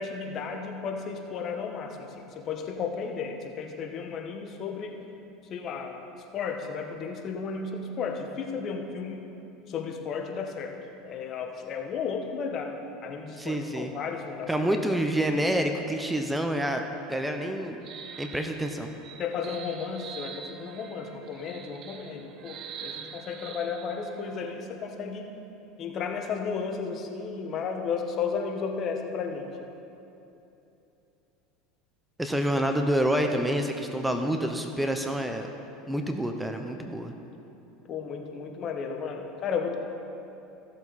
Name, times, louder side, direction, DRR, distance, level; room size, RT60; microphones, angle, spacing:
voice 1, 0.0-4.9 5.5-6.0 6.3-9.2 9.7-10.7 11.0-12.7 13.0-14.5 19.2-25.3 25.8-29.5 37.9-39.8, left 5 dB, 45° left, 4 dB, 1.2 m, -33 dB
voice 2, 13.4-13.9 14.5-16.8 17.1-17.8 18.2-18.9 32.2-35.5 35.9-37.1, right 1 dB, 5° right, 5 dB, 0.7 m, -27 dB
sound 1, 16.6-24.5, right 8 dB, 50° right, 0.7 m, -45 dB
15.0 x 7.2 x 4.1 m, 2.9 s
supercardioid pair, 100°, 0 cm